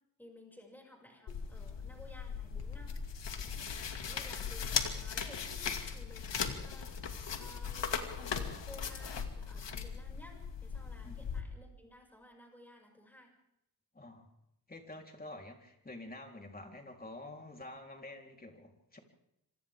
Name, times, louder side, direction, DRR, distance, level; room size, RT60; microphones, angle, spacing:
voice 1, 0.2-3.0 3.3-3.6 4.0-10.4 10.6-13.3, left 1 dB, 5° left, 0 dB, 6.6 m, -56 dB
sound 1, 1.3-11.4, left 6 dB, 80° left, 2.5 m, -38 dB
voice 2, 13.9-14.3 14.7-19.0, left 2 dB, 20° left, 2 dB, 3.9 m, -48 dB
26.5 x 26.5 x 3.7 m, 0.82 s
wide cardioid pair, 115°, 42 cm